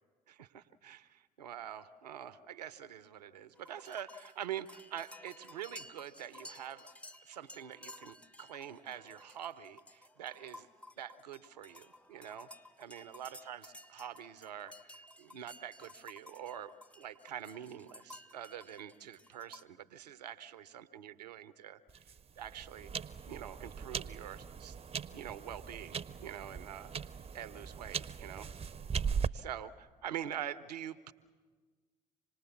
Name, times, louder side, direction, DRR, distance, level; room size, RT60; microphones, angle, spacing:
voice 1, 0.3-6.9 7.3-10.7 11.0-12.5 12.8-22.1 22.4-22.9 23.3-24.8 25.1-26.9 27.3-28.5 29.3-31.1, right 10 dB, 90° right, 15 dB, 0.6 m, -45 dB
sound 1, 3.5-19.6, left 1 dB, 5° left, 0.9 m, -55 dB
sound 2, 21.9-29.3, right 6 dB, 30° right, 0.7 m, -39 dB
26.5 x 19.5 x 7.1 m, 1.5 s
hypercardioid pair, 50°, 20 cm